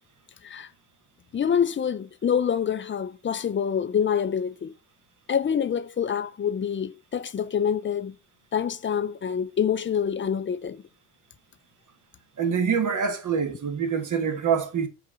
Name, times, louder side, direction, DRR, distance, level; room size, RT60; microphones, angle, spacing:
voice 1, 1.3-4.7 5.3-8.1 8.5-10.8, left 8 dB, 30° left, 0.6 m, -26 dB
voice 2, 12.4-14.9, right 6 dB, 50° right, 1.6 m, -25 dB
5.4 x 3.7 x 4.8 m
hypercardioid pair, 55°, 40 cm